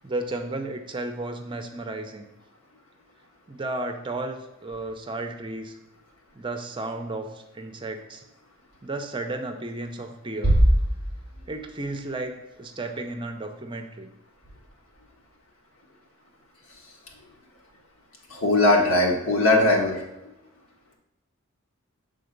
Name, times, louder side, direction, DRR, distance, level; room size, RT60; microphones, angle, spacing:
voice 1, 0.0-2.2 3.5-5.8 6.4-7.3 7.5-8.2 8.8-10.6 11.5-12.3 12.6-14.1, right 2 dB, 25° right, 5 dB, 0.6 m, -33 dB
Bass drum, 10.4-11.9, right 1 dB, 40° left, 1.9 m, -21 dB
voice 2, 18.3-20.0, left 2 dB, 85° left, 0 dB, 1.6 m, -20 dB
6.9 x 3.9 x 5.2 m, 0.95 s
head